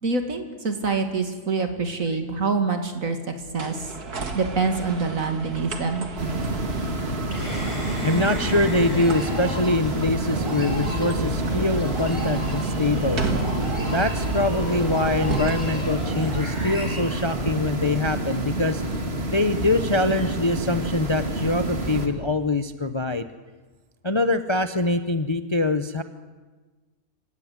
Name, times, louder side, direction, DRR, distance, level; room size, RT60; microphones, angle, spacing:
voice 1, 0.0-3.2 3.5-3.9 4.3-6.1, right 4 dB, 60° right, 6 dB, 2.8 m, -25 dB
sound 1, 3.4-15.5, right 3 dB, 90° right, 2.6 m, -33 dB
sound 2, 6.2-22.1, right 2 dB, 40° right, 2.4 m, -28 dB
sound 3, 7.3-17.9, equal, 20° right, 7.3 m, -33 dB
voice 2, 8.0-13.2 13.8-18.8 19.3-23.3 24.0-26.0, left 2 dB, 25° left, 10 dB, 0.7 m, -24 dB
26.5 x 17.0 x 9.7 m, 1.3 s
omnidirectional pair, 1.6 m